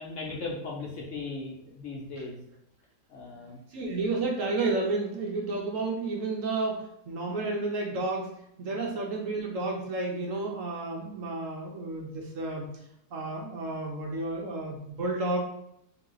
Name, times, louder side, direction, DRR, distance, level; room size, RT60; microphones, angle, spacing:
voice 1, 0.0-2.4 3.1-3.6, left 3 dB, 60° left, -1 dB, 1.0 m, -37 dB
voice 2, 3.4-12.7 13.1-15.4, right 3 dB, 60° right, -1 dB, 1.0 m, -31 dB
3.9 x 2.8 x 3.8 m, 0.76 s
omnidirectional pair, 1.8 m